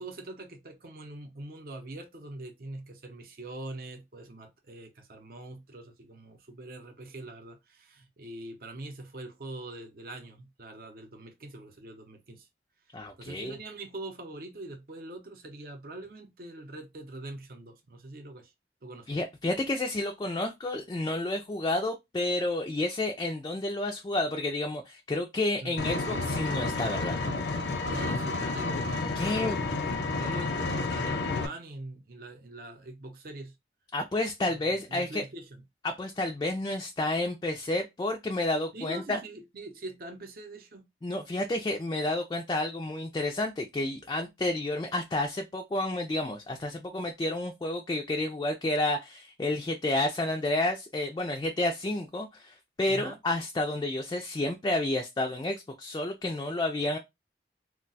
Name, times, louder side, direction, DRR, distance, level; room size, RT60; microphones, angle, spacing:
voice 1, 0.0-12.5 13.2-18.5 18.8-19.1 25.6-25.9 27.8-33.5 34.5-35.6 38.7-40.8 52.9-53.2, right 2 dB, 55° right, 0.7 m, -43 dB
voice 2, 12.9-13.6 19.1-27.2 29.1-29.6 33.9-35.2 35.8-39.2 41.0-57.0, left 2 dB, 25° left, 0.3 m, -30 dB
Vehicle, 25.8-31.5, left 3 dB, 85° left, 0.7 m, -30 dB
2.3 x 2.2 x 3.9 m
head